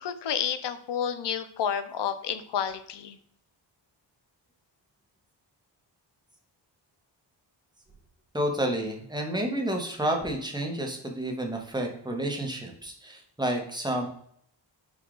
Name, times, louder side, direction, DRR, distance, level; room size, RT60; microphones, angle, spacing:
voice 1, 0.0-3.2, left 8 dB, 65° left, 10 dB, 0.5 m, -30 dB
voice 2, 8.3-14.1, right 1 dB, 10° right, 1 dB, 0.8 m, -30 dB
4.8 x 2.4 x 3.7 m, 0.65 s
wide cardioid pair, 115°, 46 cm